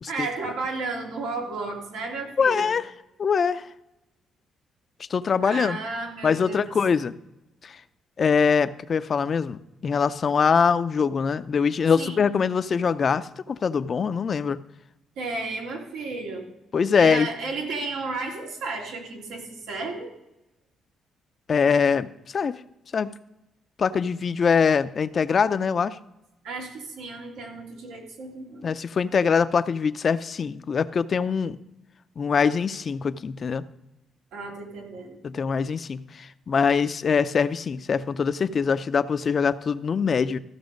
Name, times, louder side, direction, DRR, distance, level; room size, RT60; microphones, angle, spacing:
voice 1, 0.1-2.7 5.4-6.7 12.0-12.2 15.2-16.5 17.0-20.1 26.4-28.7 34.3-35.2, right 3 dB, 90° right, -1 dB, 2.7 m, -33 dB
voice 2, 2.4-2.8 3.2-3.7 5.1-5.8 6.2-7.1 7.6-7.7 8.2-14.6 16.7-17.3 21.5-22.6 22.9-23.1 23.8-26.0 28.6-31.6 32.2-33.6 35.2-40.4, left 6 dB, 45° left, 13 dB, 0.5 m, -23 dB
15.0 x 6.1 x 5.2 m, 0.92 s
cardioid pair, 90°, 0 cm